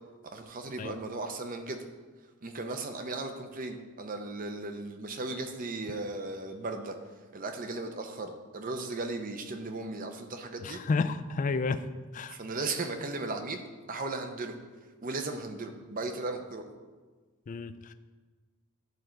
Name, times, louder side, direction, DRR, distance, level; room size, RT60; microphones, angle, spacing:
voice 1, 0.2-1.8 2.4-7.0 7.3-10.8 12.3-13.6 13.9-14.5 15.0-16.7, right 3 dB, 40° right, 6 dB, 0.7 m, -36 dB
voice 2, 10.6-11.8 12.1-12.4 17.5-17.9, left 4 dB, 35° left, 12 dB, 0.3 m, -31 dB
11.0 x 3.8 x 4.5 m, 1.4 s
head